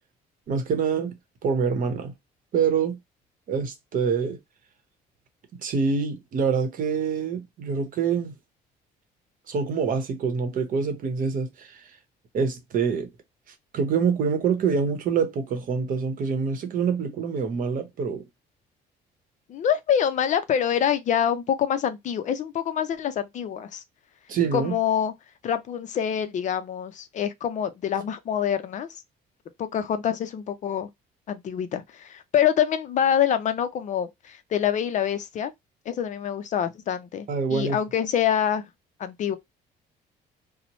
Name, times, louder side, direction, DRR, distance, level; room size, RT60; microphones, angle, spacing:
voice 1, 0.5-1.2 1.4-2.1 2.5-3.0 3.5-4.4 5.6-8.3 9.5-12.0 12.3-13.1 13.5-18.3 24.3-24.7 37.3-37.8, right 6 dB, 55° right, 0.8 m, -26 dB
voice 2, 19.5-23.8 24.5-25.1 25.4-28.9 29.6-30.9 31.3-35.5 35.9-38.6 39.0-39.4, left 9 dB, 45° left, 0.4 m, -26 dB
2.8 x 2.0 x 2.9 m
cardioid pair, 110°, 17 cm